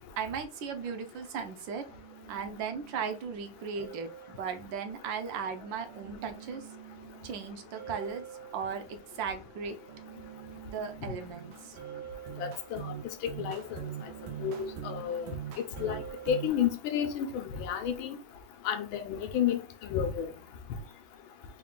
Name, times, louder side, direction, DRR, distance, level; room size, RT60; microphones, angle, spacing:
voice 1, 0.2-1.8 2.3-6.7 7.2-8.2 8.5-9.8 10.7-11.8, right 6 dB, 75° right, 1.3 m, -37 dB
sound 1, 1.9-16.5, right 10 dB, 90° right, 1.4 m, -45 dB
voice 2, 12.4-12.9 13.2-13.8 14.4-15.3 15.6-18.2 18.6-20.3, left 9 dB, 85° left, 1.4 m, -31 dB
3.8 x 2.4 x 3.6 m
omnidirectional pair, 2.2 m